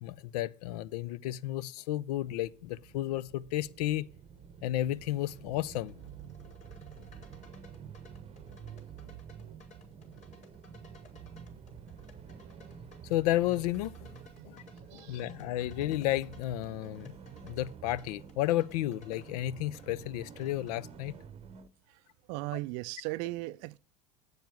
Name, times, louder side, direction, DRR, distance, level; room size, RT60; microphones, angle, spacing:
voice 1, 0.0-4.1 4.6-5.9 13.1-14.2 14.4-14.6 14.9-17.2 17.4-21.1, left 14 dB, 65° left, 0.5 m, -32 dB
sound 1, 2.2-21.7, right 8 dB, 30° right, 0.8 m, -49 dB
sound 2, 5.9-20.8, left 3 dB, 35° left, 4.5 m, -59 dB
voice 2, 14.2-15.3 21.9-23.8, right 21 dB, 55° right, 0.4 m, -39 dB
8.0 x 7.3 x 6.9 m
hypercardioid pair, 80°, 21 cm